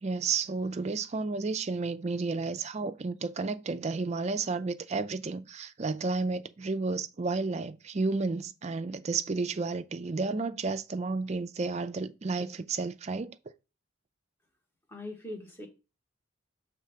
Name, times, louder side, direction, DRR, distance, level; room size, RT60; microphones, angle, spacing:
voice 1, 0.0-13.4, right 4 dB, 35° right, 0.4 m, -32 dB
voice 2, 14.9-15.7, left 1 dB, 10° left, 1.3 m, -41 dB
6.1 x 3.3 x 5.6 m
head